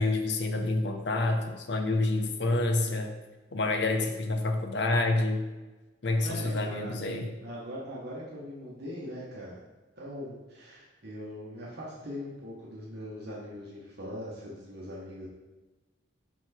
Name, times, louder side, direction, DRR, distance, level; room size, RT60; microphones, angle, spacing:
voice 1, 0.0-3.2 3.5-5.4 6.0-7.3, left 2 dB, 65° left, 5 dB, 0.8 m, -28 dB
voice 2, 6.2-7.0 7.4-9.6 10.0-15.3, equal, 60° right, -6 dB, 1.3 m, -41 dB
6.0 x 4.5 x 4.3 m, 1.2 s
head